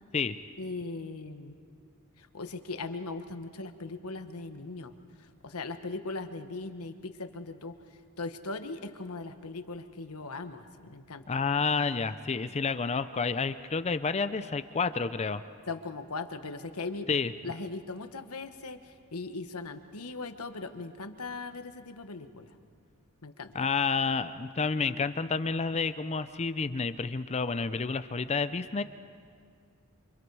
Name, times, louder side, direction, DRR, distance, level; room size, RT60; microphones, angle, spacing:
voice 1, 0.6-1.6 2.2-4.9 5.4-7.7 8.2-11.2 15.7-22.5 23.2-23.5, left 3 dB, 85° left, 8 dB, 1.3 m, -39 dB
voice 2, 11.3-15.4 17.1-17.3 23.5-28.8, left 4 dB, 30° left, 12 dB, 0.5 m, -29 dB
29.0 x 25.0 x 4.8 m, 2.2 s
head